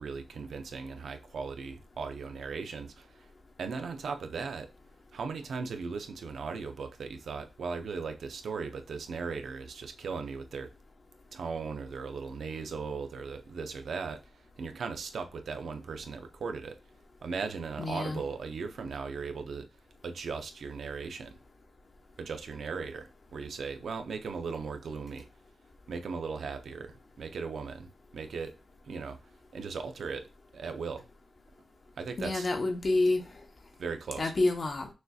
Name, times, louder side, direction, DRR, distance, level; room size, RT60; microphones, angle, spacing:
voice 1, 0.0-3.3 3.6-4.7 5.1-10.7 11.3-16.8 17.2-19.7 20.0-21.3 22.2-25.3 25.9-28.5 28.8-29.2 29.5-30.3 30.5-31.0 32.0-32.5 33.8-34.3, right 5 dB, 80° right, 0.5 m, -38 dB
voice 2, 17.8-18.2 32.2-33.2 34.2-34.9, left 2 dB, 45° left, 0.9 m, -28 dB
6.2 x 2.7 x 2.3 m
wide cardioid pair, 105°, 0 cm